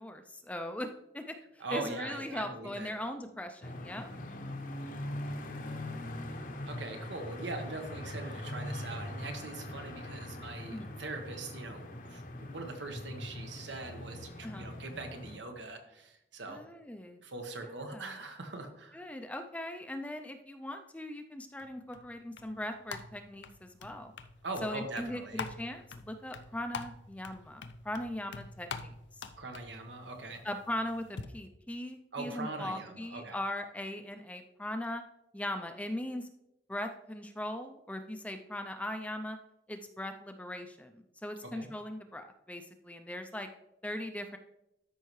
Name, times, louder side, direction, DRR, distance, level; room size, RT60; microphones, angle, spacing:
voice 1, 0.0-4.1 10.7-10.9 14.4-14.7 16.5-17.2 17.8-18.2 18.9-24.1 24.6-28.9 30.4-35.0 35.3-36.3 36.7-39.4 39.7-43.5 43.8-44.4, left 1 dB, 10° left, 7 dB, 0.4 m, -39 dB
voice 2, 1.6-2.9 6.7-16.6 17.2-19.0 24.4-25.4 29.4-30.4 32.1-33.4 41.5-41.7, right 3 dB, 90° right, 4 dB, 1.3 m, -42 dB
sound 1, 3.6-15.4, left 1 dB, 45° left, 0.8 m, -42 dB
sound 2, 21.6-31.3, left 5 dB, 80° left, 0.5 m, -46 dB
13.0 x 5.5 x 3.1 m, 0.87 s
head